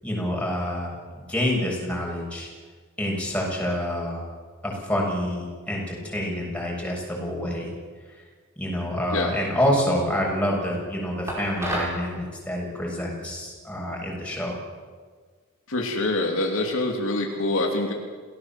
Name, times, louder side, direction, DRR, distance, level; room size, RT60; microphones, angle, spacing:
voice 1, 0.0-2.5 3.0-4.2 4.6-7.7 8.6-14.6, equal, 5° left, -3 dB, 7.2 m, -27 dB
Laying down a plate, 11.3-12.0, right 1 dB, 15° right, 5.4 m, -29 dB
voice 2, 15.7-17.9, left 2 dB, 65° left, 1 dB, 3.0 m, -25 dB
28.5 x 17.5 x 7.7 m, 1.5 s
head